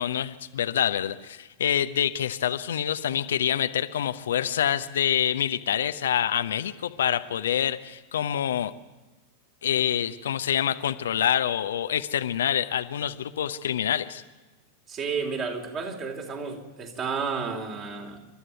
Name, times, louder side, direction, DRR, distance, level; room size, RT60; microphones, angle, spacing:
voice 1, 0.0-8.7 9.6-14.2, left 10 dB, 65° left, 11 dB, 0.8 m, -26 dB
voice 2, 14.9-18.2, right 5 dB, 30° right, 3 dB, 3.9 m, -31 dB
28.0 x 12.5 x 9.4 m, 1.2 s
figure-of-eight pair, 90°, 0 cm